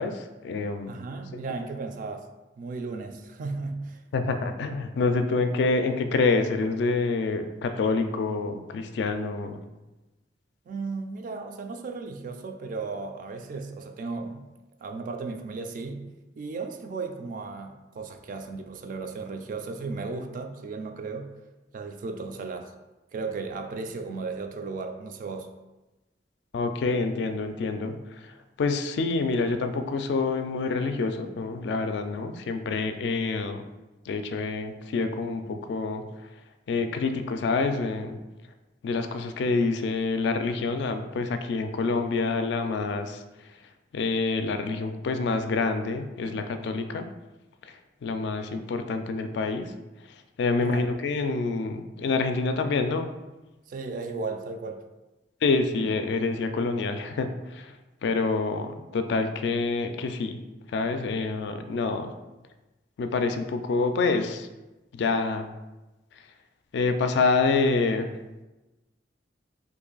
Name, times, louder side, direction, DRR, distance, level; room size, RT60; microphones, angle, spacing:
voice 1, 0.0-1.0 4.1-9.6 26.5-33.6 34.1-36.0 36.7-38.2 38.8-43.2 43.9-47.1 47.6-49.7 50.4-53.1 55.4-57.7 58.0-60.4 60.7-62.1 63.0-64.5 64.9-65.5 66.7-68.1, left 3 dB, 70° left, 8 dB, 0.3 m, -27 dB
voice 2, 0.9-2.3 2.6-4.0 10.7-14.5 14.8-16.1 16.4-21.3 21.7-22.7 23.1-25.5 50.6-50.9 53.7-54.8, right 4 dB, 45° right, 6 dB, 0.3 m, -35 dB
3.0 x 2.6 x 3.9 m, 1.1 s
head